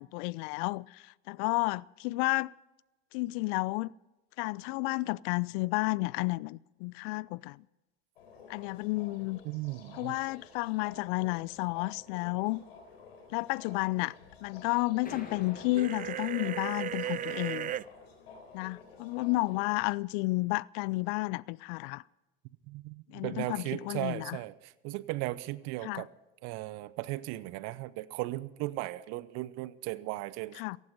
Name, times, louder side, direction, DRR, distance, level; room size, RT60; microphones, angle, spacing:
voice 1, 0.0-2.5 3.1-3.9 4.4-7.6 8.5-9.4 9.9-12.6 13.3-14.1 14.4-17.7 18.5-22.0 23.1-24.4 25.8-26.0 30.6-30.8, left 23 dB, 60° left, 0.5 m, -31 dB
sound 1, 8.2-19.9, left 4 dB, 80° left, 4.0 m, -53 dB
voice 2, 9.4-10.2 22.7-26.1 26.4-30.6, right 18 dB, 60° right, 0.9 m, -37 dB
sound 2, 15.0-17.5, left 4 dB, 30° left, 7.3 m, -49 dB
sound 3, 15.7-17.8, right 11 dB, 30° right, 0.4 m, -35 dB
17.5 x 15.0 x 5.3 m
hypercardioid pair, 75°, 30 cm